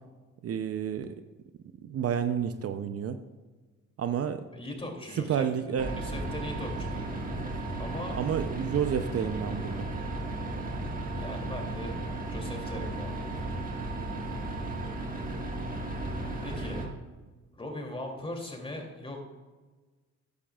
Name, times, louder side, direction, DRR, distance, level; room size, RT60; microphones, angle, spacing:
voice 1, 0.4-1.2 1.8-3.2 4.0-4.4 5.2-5.9 8.2-9.9 13.3-13.4, right 8 dB, 50° right, 9 dB, 0.6 m, -30 dB
voice 2, 4.5-5.5 6.0-7.0 7.8-8.2 11.1-11.9 12.3-13.2 16.4-16.8 17.5-19.2, left 1 dB, 20° left, 1 dB, 2.7 m, -39 dB
sound 1, 5.8-16.9, right 2 dB, 30° right, 1.7 m, -35 dB
13.5 x 10.0 x 2.4 m, 1.3 s
cardioid pair, 90°, 30 cm